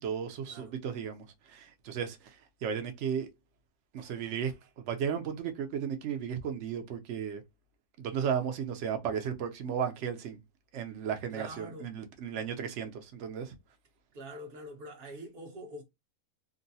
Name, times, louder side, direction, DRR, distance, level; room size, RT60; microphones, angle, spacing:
voice 1, 0.0-2.3 2.6-3.3 3.9-7.4 8.0-10.4 10.7-13.6, right 7 dB, 60° right, 0.8 m, -35 dB
voice 2, 11.3-11.9 14.1-15.8, right 1 dB, 40° right, 1.1 m, -45 dB
3.7 x 2.2 x 2.7 m
omnidirectional pair, 1.6 m